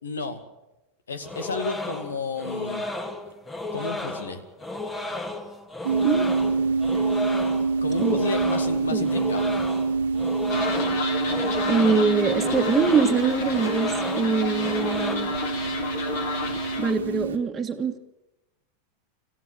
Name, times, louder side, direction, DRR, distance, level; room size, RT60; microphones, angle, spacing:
voice 1, 0.0-0.4 1.1-2.8 3.7-4.4 7.8-9.6, left 4 dB, 80° left, 10 dB, 2.4 m, -32 dB
sound 1, 1.2-15.2, left 2 dB, 20° left, 2.3 m, -33 dB
sound 2, 5.8-17.4, right 4 dB, 75° right, 1.7 m, -26 dB
sound 3, 10.5-16.9, left 5 dB, 60° left, 3.6 m, -32 dB
voice 2, 11.7-15.3 16.8-18.0, right 5 dB, 20° right, -2 dB, 1.8 m, -24 dB
26.5 x 15.0 x 7.8 m, 0.97 s
hypercardioid pair, 90°, 0 cm